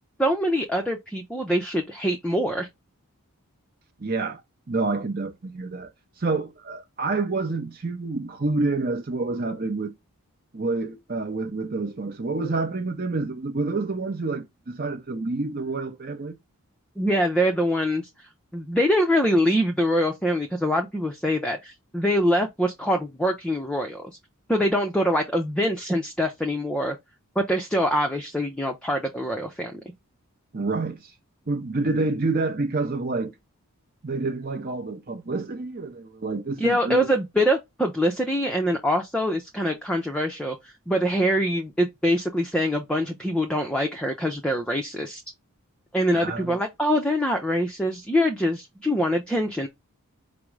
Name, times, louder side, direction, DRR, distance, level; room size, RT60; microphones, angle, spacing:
voice 1, 0.2-2.7 17.0-24.1 24.5-27.0 27.4-29.8 36.6-45.2 45.9-49.7, equal, 5° left, 0.5 m, -24 dB
voice 2, 4.0-4.4 4.7-5.9 6.2-9.9 10.5-16.4 30.5-31.1 31.5-33.3 34.0-37.1 46.1-46.6, right 3 dB, 40° right, 0.6 m, -28 dB
5.1 x 2.0 x 4.6 m
head